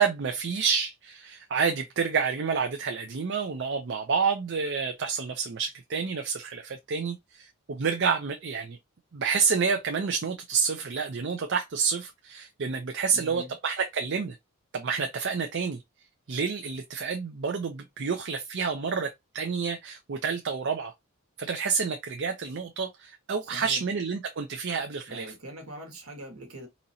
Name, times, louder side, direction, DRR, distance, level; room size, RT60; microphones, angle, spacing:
voice 1, 0.0-8.8 9.1-14.4 14.7-15.8 16.3-20.9 21.4-25.3, right 5 dB, 50° right, 0.5 m, -29 dB
voice 2, 13.1-13.6 23.4-23.8 25.1-26.7, right 1 dB, 70° right, 1.5 m, -42 dB
4.0 x 2.9 x 2.7 m
head